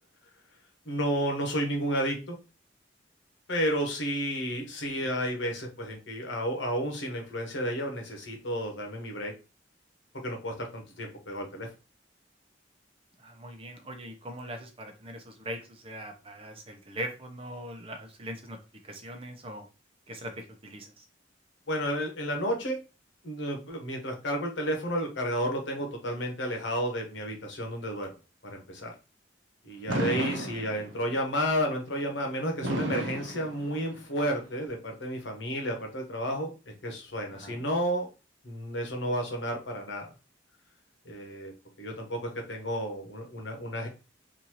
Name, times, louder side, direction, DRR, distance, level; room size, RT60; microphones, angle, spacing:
voice 1, 0.8-2.4 3.5-9.3 10.2-11.7 21.7-22.8 23.2-28.1 28.5-28.9 29.6-38.1 38.4-40.1 41.0-41.5 41.8-43.9, equal, 85° left, 2 dB, 1.1 m, -31 dB
voice 2, 13.2-18.6 18.8-19.7 20.1-21.1 37.3-37.6, right 1 dB, 30° right, 5 dB, 0.7 m, -41 dB
Fireworks, 29.9-31.2 32.6-34.2, right 1 dB, 90° right, 0.8 m, -32 dB
4.0 x 2.6 x 3.0 m, 0.31 s
head